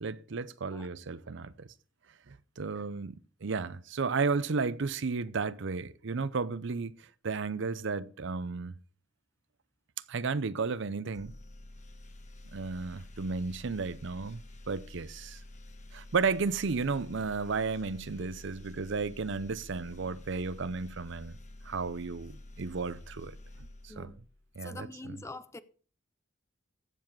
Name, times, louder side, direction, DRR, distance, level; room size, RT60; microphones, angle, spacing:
voice 1, 0.0-1.7 2.3-3.1 3.4-6.9 7.2-8.7 10.1-11.3 12.5-14.4 14.7-15.4 15.9-21.4 21.6-23.4 23.8-24.1 24.6-25.2, right 4 dB, 65° right, 0.6 m, -33 dB
sound 1, 11.1-24.5, left 1 dB, 40° left, 1.4 m, -49 dB
voice 2, 24.6-25.6, left 2 dB, 15° left, 0.5 m, -44 dB
15.0 x 7.4 x 4.6 m
head